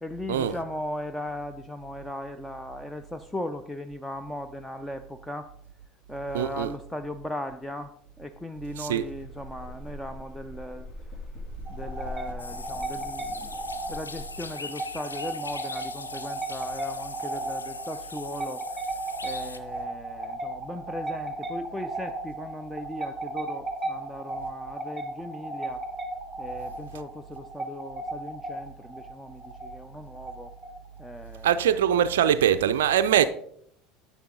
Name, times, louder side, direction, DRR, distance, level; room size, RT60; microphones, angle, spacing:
voice 1, 0.0-5.5 6.1-11.2 11.7-18.8 19.2-25.9 26.4-30.5 31.0-31.6, left 1 dB, 5° left, 0.5 m, -38 dB
voice 2, 6.3-6.7 8.8-9.0 31.4-33.2, right 10 dB, 65° right, 0.4 m, -22 dB
sound 1, 9.0-14.3, left 2 dB, 45° left, 2.0 m, -42 dB
sound 2, 11.7-31.0, right 2 dB, 15° right, 1.6 m, -35 dB
sound 3, 12.4-19.6, left 4 dB, 80° left, 0.5 m, -41 dB
10.0 x 7.3 x 3.8 m
figure-of-eight pair, 70°, 0 cm